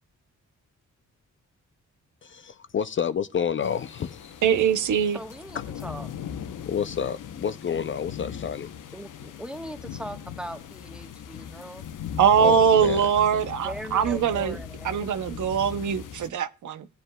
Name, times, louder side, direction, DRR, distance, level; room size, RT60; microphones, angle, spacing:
voice 1, 2.2-4.4 6.7-8.7 12.4-13.1, left 7 dB, 40° left, 0.4 m, -29 dB
sound 1, 3.6-16.3, left 8 dB, 85° left, 0.8 m, -39 dB
voice 2, 4.4-5.2 12.2-14.6 14.8-16.9, right 7 dB, 75° right, 0.6 m, -22 dB
voice 3, 5.1-6.1 8.9-11.9 13.3-15.0, right 1 dB, 5° right, 1.1 m, -40 dB
18.0 x 7.8 x 2.2 m
cardioid pair, 90°, 31 cm